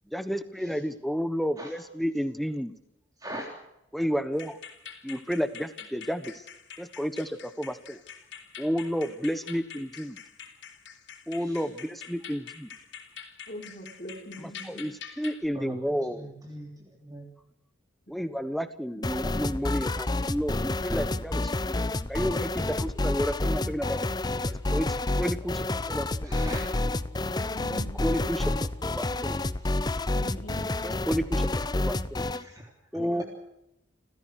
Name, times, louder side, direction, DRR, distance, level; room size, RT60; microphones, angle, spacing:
voice 1, 0.1-2.7 3.9-4.6 5.0-6.4 6.8-8.0 8.6-10.2 11.3-12.7 14.4-16.3 18.1-21.7 22.1-24.0 24.5-24.9 25.2-26.3 27.7-28.5 28.8-29.4 30.8-32.3 32.9-33.2, equal, ahead, 11 dB, 1.3 m, -31 dB
voice 2, 3.2-3.5 11.4-11.7 15.5-17.3 26.2-26.6 29.6-29.8 32.3-33.2, right 1 dB, 20° right, 0 dB, 3.4 m, -42 dB
sound 1, 4.3-15.5, left 7 dB, 90° left, 4.1 m, -46 dB
voice 3, 13.5-14.8 18.9-20.2 27.5-28.0 30.1-30.6 33.0-33.2, right 1 dB, 45° left, 4 dB, 4.4 m, -43 dB
sound 2, 19.0-32.4, left 2 dB, 20° left, 0.7 m, -29 dB
29.0 x 16.0 x 6.5 m, 0.86 s
head